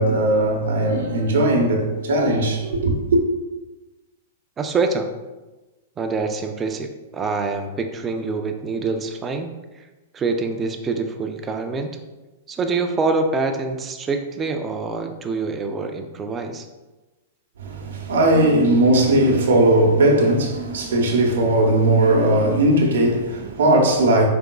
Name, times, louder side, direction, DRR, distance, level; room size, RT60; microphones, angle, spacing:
voice 1, 0.0-3.2 17.6-24.3, right 1 dB, 80° right, 0.8 m, -18 dB
voice 2, 4.6-5.1 6.0-9.9 10.1-12.0 12.5-16.7, right 4 dB, 20° right, 0.4 m, -25 dB
4.8 x 3.5 x 2.3 m
hypercardioid pair, 135°, 0 cm